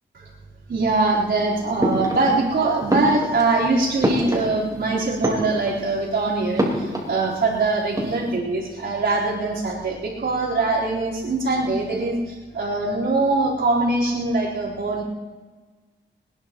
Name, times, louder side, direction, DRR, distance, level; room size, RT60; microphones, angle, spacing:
voice 1, 0.7-15.0, right 3 dB, 65° right, -6 dB, 4.0 m, -23 dB
sound 1, 1.8-2.5 2.9-4.9 5.1-6.0 6.6-7.6 7.8-8.4, equal, 20° right, 3.9 m, -26 dB
22.0 x 20.5 x 3.0 m, 1.4 s
wide cardioid pair, 110°, 20 cm